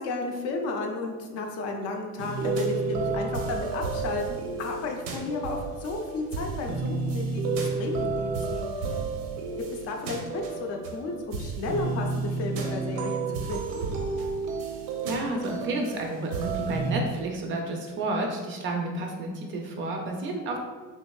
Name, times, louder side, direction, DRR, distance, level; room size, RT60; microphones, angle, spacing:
voice 1, 0.0-8.7 9.7-13.8, left 3 dB, 55° left, 2 dB, 0.5 m, -33 dB
sound 1, 2.2-16.9, right 4 dB, 85° right, 0.6 m, -31 dB
voice 2, 15.0-20.6, right 2 dB, 40° right, 2 dB, 0.4 m, -31 dB
3.5 x 3.0 x 2.3 m, 1.3 s
cardioid pair, 175°, 31 cm